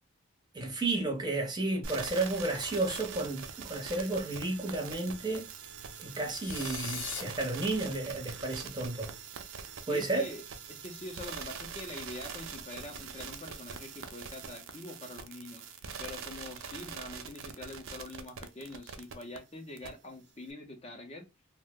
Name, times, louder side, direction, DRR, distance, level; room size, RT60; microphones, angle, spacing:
voice 1, 0.5-5.5 6.0-9.1 9.9-10.3, right 2 dB, 20° right, 0.6 m, -32 dB
sound 1, 1.8-19.4 19.8-19.9, right 6 dB, 75° right, 0.4 m, -43 dB
sound 2, 6.3-7.2, left 7 dB, 85° left, 0.7 m, -39 dB
voice 2, 9.9-10.4 10.7-15.6 16.0-21.3, left 2 dB, 30° left, 0.5 m, -44 dB
2.6 x 2.0 x 3.4 m
head